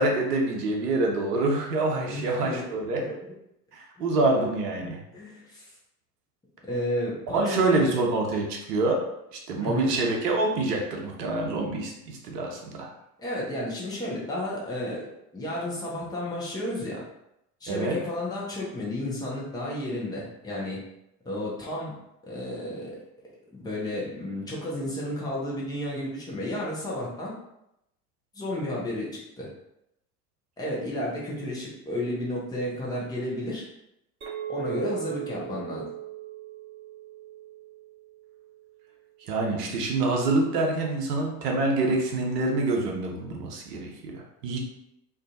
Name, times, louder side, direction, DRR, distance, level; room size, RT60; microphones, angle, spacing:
voice 1, 0.0-3.1 3.7-5.0 7.3-9.0 9.5-12.9 17.7-18.0 39.3-44.6, right 2 dB, 75° right, 1 dB, 0.7 m, -26 dB
voice 2, 2.1-3.2 5.1-5.7 6.6-8.0 9.6-9.9 13.2-15.1 15.3-17.0 17.6-20.8 21.2-21.9 22.2-22.9 23.5-27.3 28.3-29.1 29.4-29.5 30.6-33.6 34.5-35.8, left 1 dB, 10° left, -5 dB, 0.7 m, -32 dB
Chink clink, 34.2-38.7, right 13 dB, 25° right, 0.7 m, -38 dB
2.5 x 2.3 x 2.5 m, 0.83 s
figure-of-eight pair, 70°, 48 cm